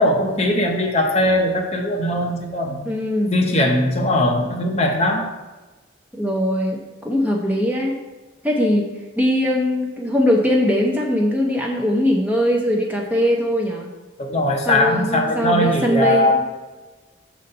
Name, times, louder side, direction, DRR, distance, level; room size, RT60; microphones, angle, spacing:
voice 1, 0.0-2.8 3.3-5.3 14.2-16.4, left 1 dB, 30° left, 2 dB, 0.7 m, -19 dB
voice 2, 2.9-3.3 6.1-8.0 8.4-8.9 9.2-13.9 14.7-16.3, equal, 5° right, -1 dB, 0.6 m, -20 dB
6.4 x 4.1 x 5.3 m, 1.2 s
head